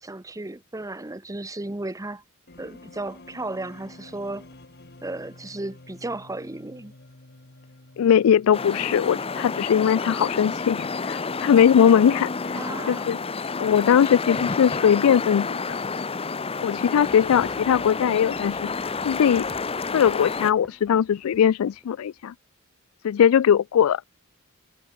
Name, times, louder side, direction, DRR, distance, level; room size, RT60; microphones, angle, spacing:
voice 1, 0.0-2.2 2.6-4.5 5.0-6.9 12.5-13.2, right 2 dB, 15° right, 0.9 m, -34 dB
sound 1, 2.5-9.5, left 2 dB, 50° left, 2.1 m, -49 dB
voice 2, 8.0-13.2 13.6-15.6 16.6-18.7 19.0-19.4 19.9-22.3 23.0-24.0, left 8 dB, 85° left, 0.3 m, -20 dB
sound 2, 8.5-20.5, left 4 dB, 30° left, 0.8 m, -30 dB
sound 3, 17.1-22.3, equal, 5° left, 1.9 m, -49 dB
head